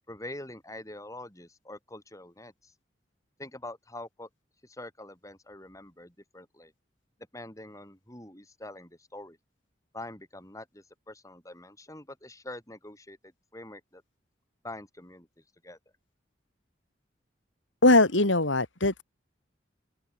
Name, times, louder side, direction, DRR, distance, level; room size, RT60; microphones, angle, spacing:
voice 1, 0.1-2.7 3.4-4.3 4.6-6.7 7.3-9.4 9.9-14.0 14.6-15.3 15.6-15.8, left 1 dB, 15° left, 8.0 m, -45 dB
voice 2, 17.8-19.0, left 2 dB, 85° left, 4.6 m, -21 dB
open air
head